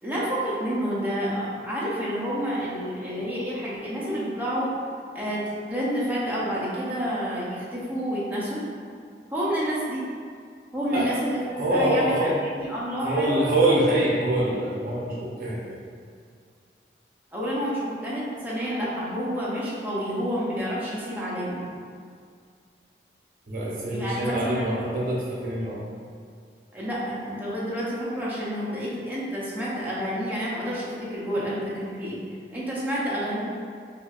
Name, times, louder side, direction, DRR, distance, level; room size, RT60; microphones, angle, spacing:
voice 1, 0.0-4.7 5.1-5.4 5.7-8.6 9.3-10.0 10.7-11.4 11.7-12.3 12.5-13.5 17.3-21.6 23.9-24.7 26.7-32.2 32.5-33.4, equal, 10° right, -8 dB, 0.6 m, -29 dB
voice 2, 11.6-12.3 13.0-15.8 23.5-25.8, right 1 dB, 50° right, -5 dB, 0.7 m, -25 dB
4.3 x 2.4 x 2.4 m, 2.2 s
head